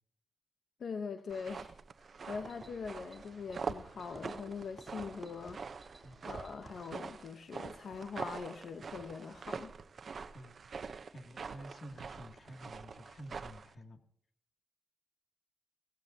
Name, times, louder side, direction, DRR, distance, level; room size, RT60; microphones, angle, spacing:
voice 1, 0.8-9.7, left 5 dB, 80° left, 1.0 m, -43 dB
sound 1, 1.3-13.7, right 5 dB, 65° right, 0.9 m, -45 dB
sound 2, 2.2-7.1, right 3 dB, 40° right, 3.1 m, -53 dB
voice 2, 10.3-10.8 11.1-14.0, equal, 55° left, 2.5 m, -50 dB
17.0 x 16.5 x 2.9 m
cardioid pair, 85°, 0 cm